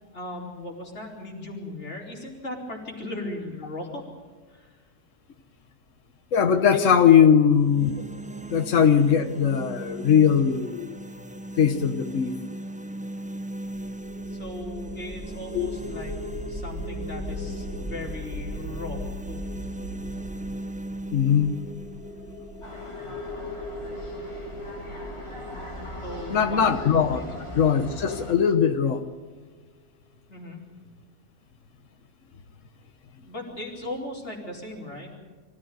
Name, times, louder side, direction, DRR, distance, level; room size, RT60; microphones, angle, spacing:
voice 1, 0.1-4.0 4.5-4.7 6.7-7.1 14.3-16.1 16.5-19.0 19.3-19.4 26.0-26.8 27.1-27.4 30.3-30.6 33.2-35.1, left 1 dB, 65° left, -1 dB, 4.8 m, -37 dB
voice 2, 6.3-7.9 8.5-11.0 11.6-12.3 15.5-15.7 21.1-21.5 26.3-27.2 27.5-29.0, left 7 dB, 85° left, 7 dB, 1.5 m, -20 dB
sound 1, 7.4-23.4, right 1 dB, 10° right, 0.5 m, -39 dB
sound 2, 13.6-28.8, left 1 dB, 60° right, 3.0 m, -38 dB
sound 3, 22.6-28.3, left 1 dB, 25° left, 3.0 m, -40 dB
24.5 x 15.5 x 9.3 m, 1.4 s
omnidirectional pair, 1.3 m